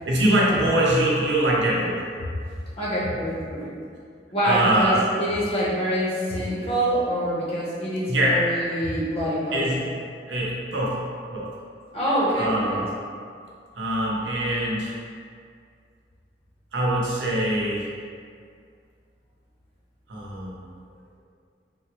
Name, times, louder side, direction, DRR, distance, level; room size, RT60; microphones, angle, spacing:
voice 1, 0.0-2.0 4.4-5.0 8.1-8.4 9.5-9.8 10.3-11.0 11.3-11.5 12.4-12.9 13.7-14.9 16.7-17.9 20.1-20.7, right 1 dB, 90° right, -4 dB, 0.7 m, -23 dB
voice 2, 2.8-3.8 4.3-9.8 11.9-12.8, equal, 35° left, -7 dB, 0.7 m, -25 dB
3.7 x 2.0 x 2.9 m, 2.2 s
head